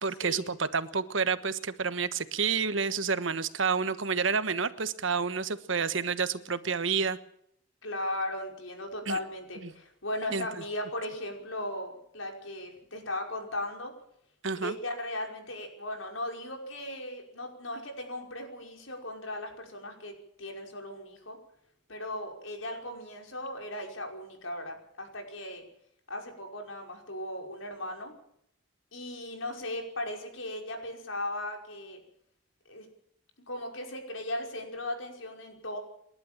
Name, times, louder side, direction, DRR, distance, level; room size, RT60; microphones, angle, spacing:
voice 1, 0.0-7.2 9.1-9.2 9.6-9.7 10.3-10.5 14.4-14.7, right 5 dB, 75° right, 13 dB, 1.3 m, -29 dB
voice 2, 7.8-13.9 14.6-21.4 21.9-25.6 26.1-28.1 28.9-32.0 32.7-32.9 33.5-35.8, left 1 dB, 85° left, 2 dB, 5.4 m, -37 dB
29.0 x 12.0 x 7.5 m, 0.72 s
head